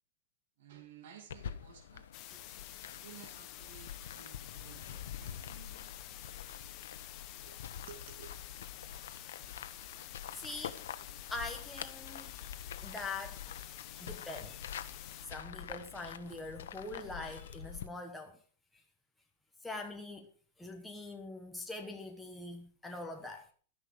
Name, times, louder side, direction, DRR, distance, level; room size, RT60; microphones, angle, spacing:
voice 1, 0.6-2.4 2.8-5.9 7.4-8.3 23.2-23.3, right 8 dB, 55° right, 2.7 m, -55 dB
sound 1, 1.3-17.9, left 9 dB, 85° left, 1.2 m, -46 dB
sound 2, 2.1-15.3, left 14 dB, 30° left, 1.0 m, -49 dB
voice 2, 10.3-12.5 12.8-13.6 13.9-14.7 15.2-18.4 19.6-20.3 20.6-23.5, left 2 dB, 5° left, 1.2 m, -43 dB
13.0 x 10.5 x 5.1 m
supercardioid pair, 175°, 0 cm